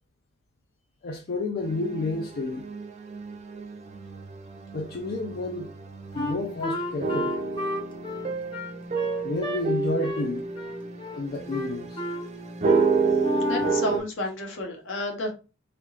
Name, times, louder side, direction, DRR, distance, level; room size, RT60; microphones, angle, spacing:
voice 1, 1.0-2.7 4.7-5.7 6.1-7.3 9.2-10.5 11.1-12.0, left 2 dB, 50° left, 0.4 m, -30 dB
sound 1, 1.6-14.0, right 4 dB, 35° right, 0.5 m, -30 dB
Wind instrument woodwind instrument, 6.1-9.6 10.0-10.3 10.6-11.2 11.5-12.3 12.6-12.9 13.2-13.9, left 1 dB, 25° left, 0.8 m, -32 dB
voice 2, 13.5-15.3, left 1 dB, 70° left, 1.0 m, -31 dB
3.5 x 2.8 x 2.5 m
head